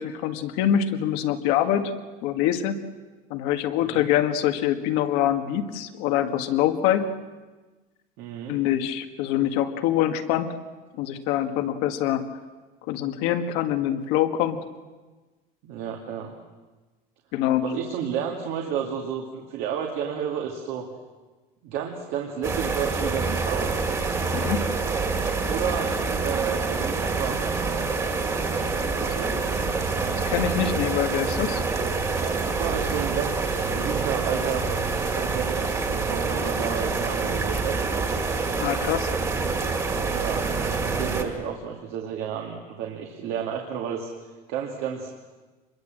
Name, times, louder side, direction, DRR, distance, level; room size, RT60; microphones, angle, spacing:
voice 1, 0.0-1.9 2.2-2.8 3.3-7.1 8.5-10.5 10.9-12.3 12.9-14.6 17.3-17.6 24.3-24.7 30.3-31.6 38.6-39.1, left 11 dB, 80° left, 7 dB, 1.8 m, -24 dB
voice 2, 8.2-8.6 15.6-16.4 17.6-20.9 21.6-23.9 25.5-27.4 29.0-29.4 32.2-33.4 33.7-34.6 35.1-37.8 39.4-39.5 40.0-40.5 40.8-44.1 44.5-45.1, right 8 dB, 65° right, 1 dB, 2.3 m, -31 dB
sound 1, 22.4-41.2, right 4 dB, 20° right, 2.3 m, -26 dB
26.0 x 21.5 x 7.7 m, 1.3 s
cardioid pair, 165°, 17 cm